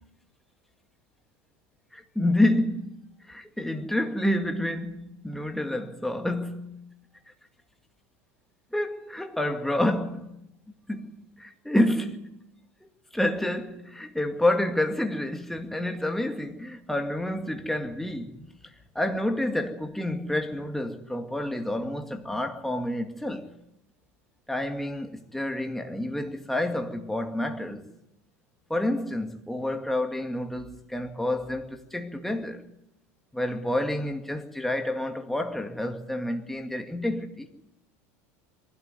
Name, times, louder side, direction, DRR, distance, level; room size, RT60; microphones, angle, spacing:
voice 1, 1.9-2.9 3.2-6.8 8.7-10.3 10.9-12.3 12.8-23.5 24.5-27.9 28.7-32.6 33.3-37.5, left 1 dB, 5° left, 2.2 m, -29 dB
23.0 x 13.0 x 9.5 m
supercardioid pair, 100°, 8 cm